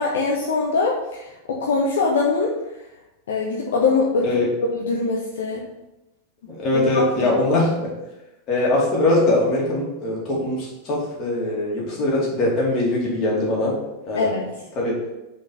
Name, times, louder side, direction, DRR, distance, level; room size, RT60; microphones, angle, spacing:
voice 1, 0.0-2.5 3.3-4.3 4.7-5.6 6.7-7.3 14.2-14.4, left 4 dB, 60° left, -2 dB, 0.9 m, -23 dB
voice 2, 6.5-7.9 8.5-13.7 14.1-14.3 14.8-15.0, left 2 dB, 35° left, -3 dB, 2.6 m, -21 dB
5.8 x 4.5 x 5.4 m, 0.96 s
figure-of-eight pair, 90°, 0 cm